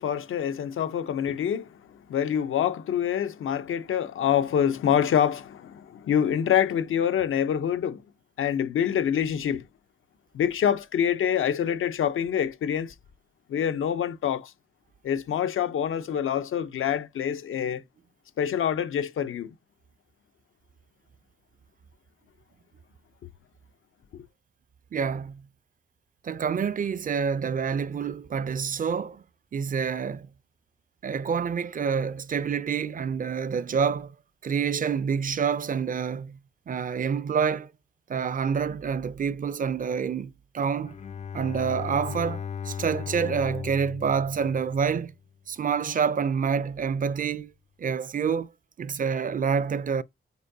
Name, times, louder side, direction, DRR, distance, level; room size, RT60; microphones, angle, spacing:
voice 1, 0.0-8.0 8.4-9.6 10.3-12.9 13.5-14.5 15.0-17.8 18.4-19.5 24.1-24.2, left 9 dB, 90° left, 0.7 m, -26 dB
voice 2, 24.9-25.4 26.2-29.2 29.5-30.3 31.0-34.1 34.4-36.4 36.7-37.7 38.1-41.0 41.3-45.1 45.5-47.5 47.8-48.5 48.8-50.0, right 6 dB, 40° right, 0.5 m, -27 dB
Bowed string instrument, 40.8-45.1, left 7 dB, 35° left, 0.4 m, -37 dB
8.2 x 4.6 x 2.7 m
wide cardioid pair, 115°, 20 cm